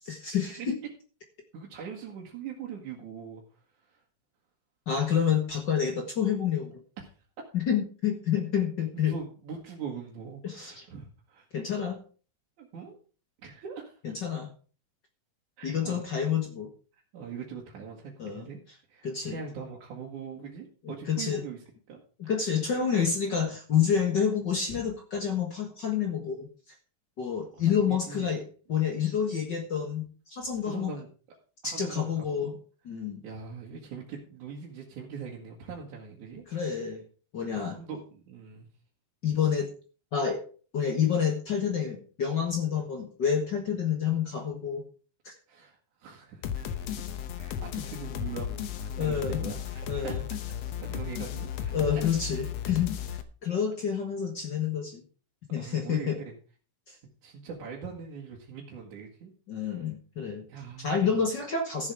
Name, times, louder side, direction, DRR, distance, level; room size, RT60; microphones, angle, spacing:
voice 1, 0.1-0.7 4.9-6.8 7.5-9.1 10.4-10.9 11.5-12.0 14.2-14.5 15.6-16.7 18.2-18.5 19.0-19.4 21.1-21.4 22.2-26.5 27.2-28.4 28.7-30.9 31.6-32.5 32.8-33.2 36.5-37.0 37.3-37.8 39.2-39.7 40.1-40.4 40.7-44.8 45.2-45.3 49.0-49.4 49.9-50.2 51.7-53.0 53.4-55.0 55.5-56.2 56.9-57.0 59.5-60.4 60.8-61.9, left 7 dB, 50° left, 3 dB, 1.4 m, -28 dB
voice 2, 1.5-3.4 3.8-4.0 7.0-7.1 9.1-11.4 12.6-13.0 13.4-14.2 15.6-16.0 16.9-18.6 18.9-21.6 21.9-22.0 22.4-22.6 27.5-28.3 30.6-31.1 31.6-32.5 33.2-36.4 37.7-38.7 45.5-50.2 50.7-51.7 55.6-56.2 57.2-59.3 59.7-59.9 60.5-61.3, right 6 dB, 65° right, -3 dB, 3.1 m, -42 dB
sound 1, 46.4-53.2, left 9 dB, 65° left, 1.7 m, -34 dB
14.0 x 7.4 x 4.8 m, 0.38 s
omnidirectional pair, 3.9 m